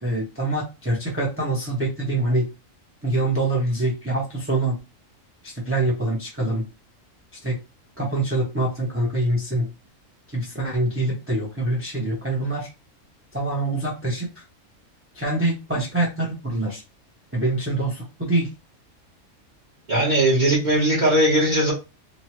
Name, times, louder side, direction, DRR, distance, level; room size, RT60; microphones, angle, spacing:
voice 1, 0.0-2.5 3.0-4.8 5.4-6.6 7.4-7.6 8.0-9.7 10.3-12.7 13.3-14.4 15.1-16.8 17.3-18.5, right 2 dB, 15° right, -3 dB, 0.5 m, -25 dB
voice 2, 19.9-21.7, right 1 dB, 40° right, -5 dB, 1.0 m, -19 dB
3.0 x 2.2 x 2.8 m, 0.28 s
omnidirectional pair, 1.4 m